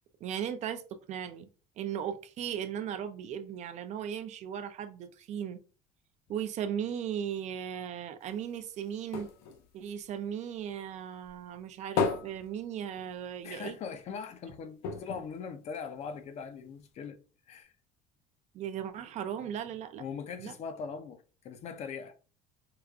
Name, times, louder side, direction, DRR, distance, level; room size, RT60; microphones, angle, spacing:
voice 1, 0.2-1.5 1.8-5.6 6.3-9.3 9.7-13.8 18.5-20.0 20.4-20.5, right 9 dB, 45° right, 0.4 m, -37 dB
sound 1, 8.2-10.9 11.2-13.5 13.8-13.9 14.2-14.3 14.8-16.3 16.9-17.0, left 5 dB, 80° left, 0.6 m, -36 dB
voice 2, 13.4-17.2 17.5-17.7 20.0-22.1, left 6 dB, 40° left, 0.5 m, -41 dB
4.7 x 2.3 x 2.3 m
cardioid pair, 135°, 17 cm